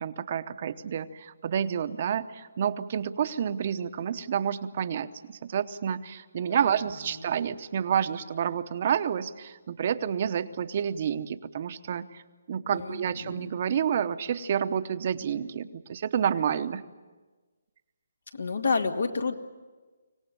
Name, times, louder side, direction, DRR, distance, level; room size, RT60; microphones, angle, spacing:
voice 1, 0.0-12.2 12.5-16.8, right 8 dB, 40° right, 11 dB, 0.8 m, -29 dB
voice 2, 7.1-7.4 12.7-13.5 18.3-19.4, left 4 dB, 75° left, 7 dB, 2.0 m, -30 dB
25.0 x 17.5 x 9.2 m, 1.3 s
hypercardioid pair, 160°, 0 cm